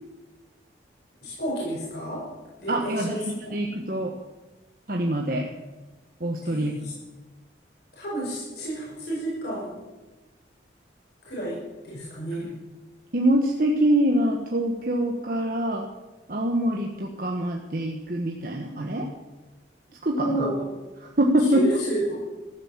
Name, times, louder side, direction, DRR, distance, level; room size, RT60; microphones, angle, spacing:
voice 1, 1.2-2.3 2.6-3.5 6.4-6.9 7.9-9.7 11.3-12.5 20.1-20.6 21.4-22.2, right 1 dB, 60° left, -6 dB, 5.8 m, -30 dB
voice 2, 2.7-3.2 3.5-4.1 4.9-5.5 6.2-6.8 13.1-15.9 16.3-19.1 20.0-20.5 21.0-21.6, right 1 dB, 50° right, 1 dB, 1.3 m, -24 dB
14.0 x 12.0 x 7.4 m, 1.1 s
head